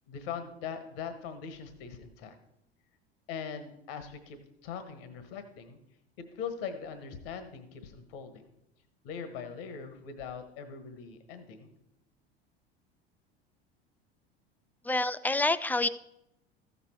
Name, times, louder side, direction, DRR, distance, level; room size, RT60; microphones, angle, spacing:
voice 1, 0.1-2.3 3.3-5.8 6.2-8.5 9.0-11.7, left 6 dB, 65° left, 10 dB, 1.3 m, -41 dB
voice 2, 14.9-15.9, left 2 dB, 5° left, 14 dB, 0.3 m, -27 dB
14.0 x 6.9 x 4.5 m, 0.83 s
figure-of-eight pair, 75°, 31 cm